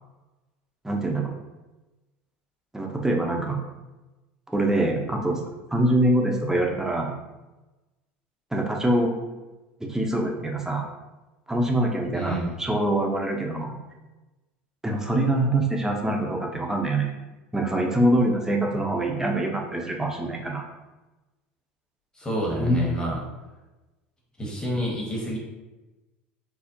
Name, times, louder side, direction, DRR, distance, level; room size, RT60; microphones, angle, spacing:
voice 1, 0.8-1.3 2.7-3.6 4.5-5.4 5.7-7.1 8.5-9.1 9.9-10.8 11.5-13.8 14.8-17.1 17.5-20.7 22.6-23.1, right 1 dB, 10° right, 1 dB, 0.6 m, -24 dB
voice 2, 12.1-12.6 22.2-23.2 24.4-25.4, right 1 dB, 10° left, -3 dB, 1.1 m, -29 dB
4.1 x 2.0 x 2.6 m, 1.1 s
hypercardioid pair, 85°, 6 cm